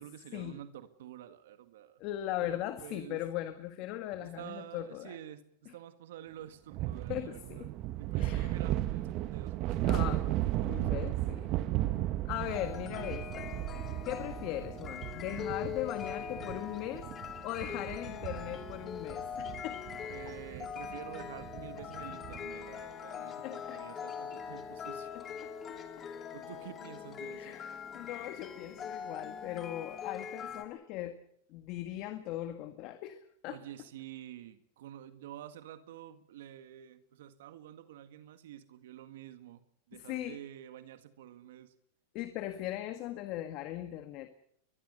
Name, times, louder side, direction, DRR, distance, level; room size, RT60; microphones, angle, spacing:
voice 1, 0.0-2.0 2.4-3.2 4.2-7.7 7.9-11.2 20.1-25.2 26.3-27.6 33.5-41.7, right 11 dB, 75° right, 10 dB, 1.9 m, -49 dB
voice 2, 2.0-5.2 7.1-7.7 8.2-8.5 9.9-10.2 10.7-11.5 12.2-13.4 14.0-17.1 17.4-19.8 23.4-23.8 25.1-26.1 27.3-31.2 31.5-33.6 39.9-40.4 42.1-44.3, left 13 dB, 45° left, 9 dB, 1.7 m, -39 dB
sound 1, 6.7-22.5, right 14 dB, 40° right, 1.3 m, -36 dB
sound 2, 12.4-30.6, left 8 dB, 25° left, 2.7 m, -42 dB
22.5 x 22.0 x 6.8 m, 0.69 s
supercardioid pair, 135°, 0 cm